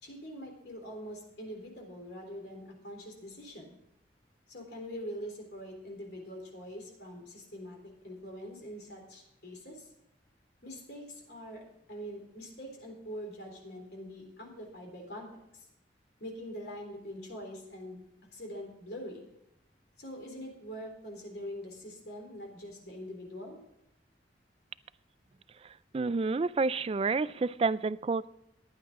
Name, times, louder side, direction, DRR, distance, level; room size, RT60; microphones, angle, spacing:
voice 1, 0.0-3.8 4.5-7.8 8.0-9.9 10.6-11.6 11.9-15.7 16.2-18.0 18.3-19.3 20.0-23.6, equal, 60° left, 1 dB, 3.8 m, -44 dB
voice 2, 25.9-28.3, right 4 dB, 30° right, 17 dB, 0.3 m, -29 dB
15.0 x 10.5 x 3.7 m, 0.81 s
head